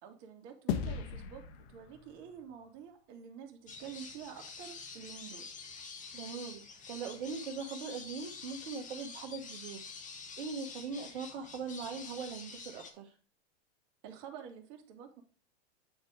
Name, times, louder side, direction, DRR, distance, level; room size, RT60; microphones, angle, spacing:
voice 1, 0.0-5.5 14.0-15.2, right 8 dB, 50° right, 4 dB, 2.4 m, -49 dB
sound 1, 0.7-3.3, left 7 dB, 60° left, 1.3 m, -39 dB
sound 2, 3.7-12.9, left 5 dB, 20° left, 1.6 m, -47 dB
voice 2, 6.1-13.1, right 5 dB, 70° right, 1 dB, 1.5 m, -41 dB
9.5 x 4.5 x 4.9 m, 0.35 s
hypercardioid pair, 115°, 34 cm